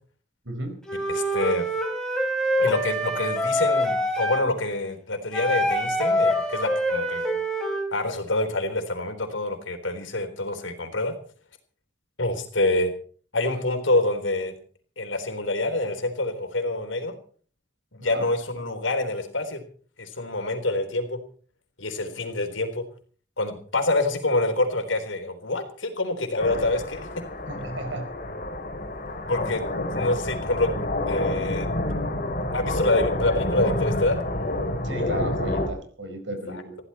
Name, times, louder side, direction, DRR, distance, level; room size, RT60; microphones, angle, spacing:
voice 1, 0.4-0.8 18.0-18.2 27.5-28.1 34.8-36.8, right 1 dB, 75° right, 7 dB, 4.7 m, -34 dB
Wind instrument woodwind instrument, 0.8-4.5 5.3-7.9, equal, 5° left, 4.2 m, -25 dB
voice 2, 1.1-1.7 2.6-7.4 7.9-11.1 12.2-12.9 13.3-14.5 15.0-17.2 17.9-19.6 20.0-21.2 21.8-22.8 23.4-27.1 29.3-30.7 31.1-31.7 32.5-34.2 36.5-36.6, left 2 dB, 85° left, 7 dB, 3.8 m, -26 dB
sound 1, 26.4-35.7, left 1 dB, 45° left, 3.4 m, -28 dB
21.0 x 15.5 x 4.3 m, 0.43 s
head